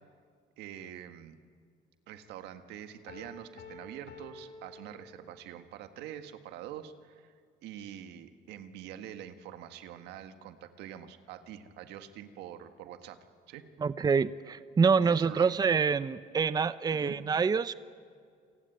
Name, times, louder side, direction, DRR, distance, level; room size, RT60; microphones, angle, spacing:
voice 1, 0.6-1.4 2.1-7.3 7.6-13.2 13.5-13.6 15.0-15.5 16.9-17.2, right 10 dB, 90° right, 9 dB, 1.7 m, -45 dB
Piano, 3.1-5.6, left 3 dB, 75° left, 3.1 m, -50 dB
voice 2, 13.8-17.7, right 5 dB, 25° right, 15 dB, 0.6 m, -26 dB
28.5 x 18.0 x 9.4 m, 2.1 s
cardioid pair, 110°, 17 cm